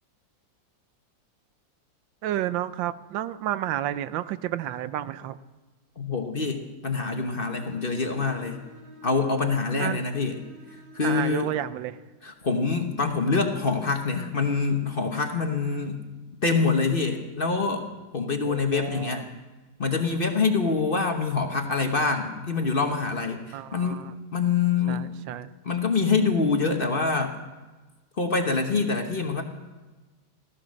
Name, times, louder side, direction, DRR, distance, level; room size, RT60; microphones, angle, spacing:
voice 1, 2.2-5.4 9.8-10.0 11.0-12.0 18.4-19.4 23.5-24.1 24.9-25.5, right 12 dB, 90° right, 14 dB, 1.4 m, -31 dB
voice 2, 6.0-8.6 9.0-10.4 10.9-11.5 12.2-16.0 16.4-17.8 18.1-19.3 19.8-24.0 24.3-25.0 25.6-27.4 28.2-29.4, left 4 dB, 35° left, 4 dB, 1.1 m, -25 dB
Bowed string instrument, 7.4-11.5, left 2 dB, 45° right, 6.2 m, -50 dB
15.5 x 14.5 x 6.4 m, 1.2 s
omnidirectional pair, 2.0 m